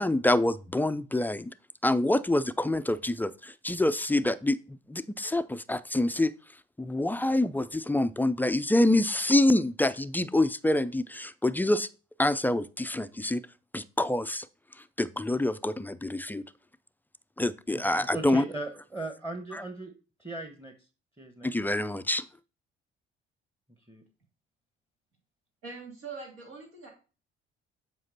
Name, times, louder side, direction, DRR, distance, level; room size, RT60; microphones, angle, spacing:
voice 1, 0.0-1.5 1.8-4.6 4.9-6.3 6.8-11.9 12.2-13.4 13.7-14.5 15.0-16.4 17.4-18.4 19.5-19.6 21.4-22.3, left 1 dB, 5° left, 14 dB, 0.4 m, -26 dB
voice 2, 18.1-19.9 20.2-20.7 21.2-21.5 23.9-24.0, right 2 dB, 10° right, 7 dB, 1.1 m, -38 dB
voice 3, 25.6-26.9, right 4 dB, 75° right, -2 dB, 2.9 m, -42 dB
7.7 x 4.9 x 4.0 m, 0.34 s
hypercardioid pair, 50°, 30 cm